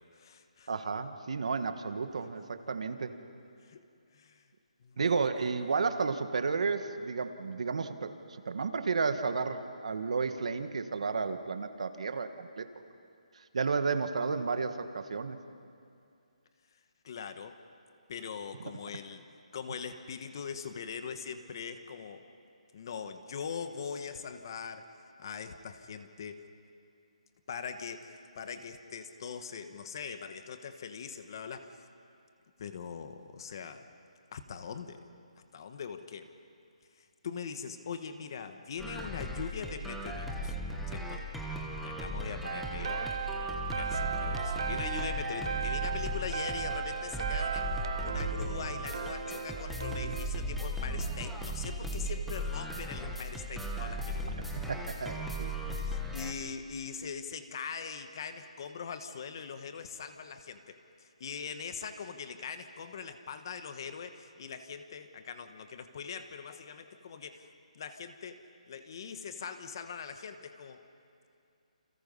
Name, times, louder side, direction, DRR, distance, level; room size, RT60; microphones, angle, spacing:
voice 1, 0.0-0.7 3.6-3.8 4.1-4.4 4.8-5.2 17.0-17.6 18.1-19.2 19.5-22.2 22.7-24.9 25.2-26.4 27.5-31.9 32.6-33.9 34.3-35.1 35.5-36.3 37.0-40.5 40.9-41.2 41.8-43.1 43.7-54.6 55.8-67.5 67.7-70.8, left 6 dB, 35° left, 9 dB, 1.3 m, -42 dB
voice 2, 0.7-3.2 5.0-12.7 13.5-15.4 54.7-55.8, right 4 dB, 55° right, 9 dB, 1.7 m, -32 dB
sound 1, 38.8-56.3, equal, ahead, 1.2 m, -36 dB
sound 2, 42.4-50.3, right 7 dB, 40° right, 0.7 m, -37 dB
29.0 x 27.5 x 5.5 m, 2.4 s
hypercardioid pair, 170°, 4 cm